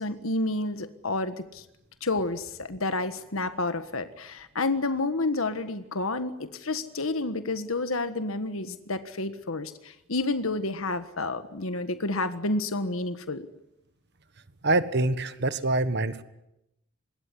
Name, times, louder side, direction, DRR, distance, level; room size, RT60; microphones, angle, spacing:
voice 1, 0.0-1.6 2.0-13.5, left 2 dB, 80° left, 10 dB, 1.6 m, -30 dB
voice 2, 14.6-16.2, right 2 dB, 55° right, 12 dB, 1.5 m, -25 dB
25.0 x 21.5 x 9.8 m, 0.87 s
head